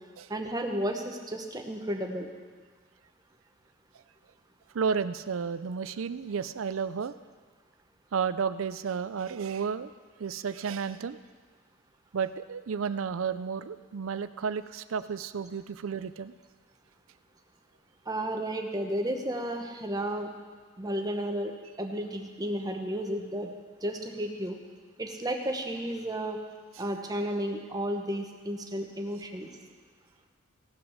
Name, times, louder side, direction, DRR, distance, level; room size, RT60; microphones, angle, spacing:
voice 1, 0.3-2.3 18.1-20.3 20.8-23.5 23.8-24.6 25.0-26.4 26.8-29.5, right 1 dB, 20° right, 3 dB, 1.1 m, -32 dB
voice 2, 4.7-7.1 8.1-9.9 10.2-11.2 12.1-16.3, right 6 dB, 80° right, 14 dB, 0.5 m, -32 dB
17.0 x 5.9 x 6.5 m, 1.5 s
head